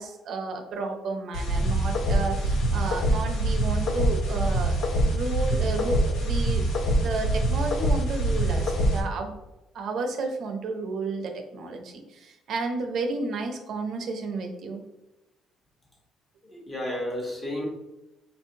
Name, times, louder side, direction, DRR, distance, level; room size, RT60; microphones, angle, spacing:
voice 1, 0.0-4.8 5.0-6.6 6.9-9.3 9.7-14.8, right 3 dB, 60° right, 4 dB, 0.5 m, -32 dB
sound 1, 1.3-9.0, right 1 dB, 75° left, 0.6 m, -24 dB
voice 2, 16.4-17.7, left 1 dB, 30° left, 0 dB, 1.0 m, -32 dB
4.2 x 2.6 x 2.7 m, 0.99 s
cardioid pair, 115°, 0 cm